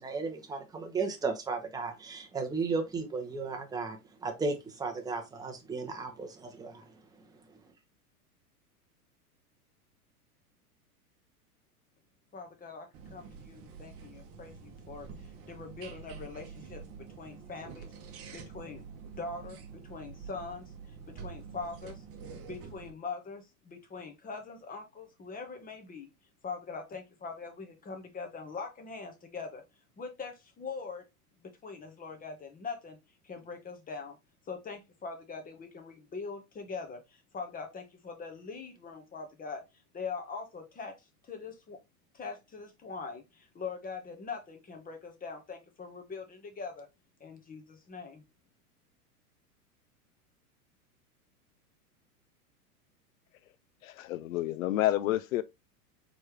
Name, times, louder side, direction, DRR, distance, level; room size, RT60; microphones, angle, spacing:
voice 1, 0.0-6.9, right 4 dB, 10° right, 0.8 m, -35 dB
voice 2, 12.3-16.8 17.2-18.8 19.2-22.0 22.5-26.1 26.4-29.6 30.0-31.0 31.4-33.0 33.2-34.2 34.5-39.6 39.9-41.8 42.1-46.9 47.2-48.2, left 4 dB, 20° left, 1.2 m, -42 dB
sound 1, 12.9-22.9, right 6 dB, 30° right, 1.0 m, -47 dB
voice 3, 53.8-55.4, left 14 dB, 60° left, 0.5 m, -29 dB
4.3 x 3.4 x 3.2 m
hypercardioid pair, 100°, 46 cm